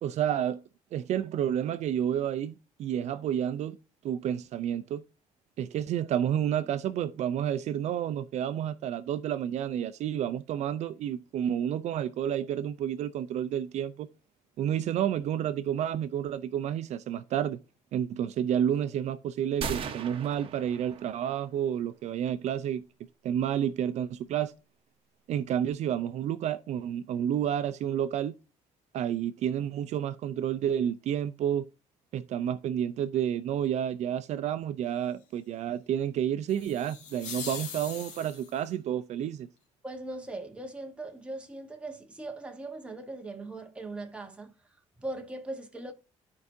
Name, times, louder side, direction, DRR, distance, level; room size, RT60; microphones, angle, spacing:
voice 1, 0.0-0.6 0.9-3.8 4.0-5.0 5.6-14.1 14.6-17.6 17.9-22.8 23.2-24.5 25.3-28.4 28.9-31.6 32.1-39.5, right 10 dB, 65° right, 0.5 m, -30 dB
sound 1, 19.6-21.5, right 6 dB, 45° right, 1.0 m, -38 dB
sound 2, 36.5-38.7, left 6 dB, 80° left, 2.1 m, -41 dB
voice 2, 39.8-44.5 45.0-45.9, right 2 dB, 10° right, 1.2 m, -39 dB
13.5 x 4.7 x 2.7 m
cardioid pair, 145°, 13 cm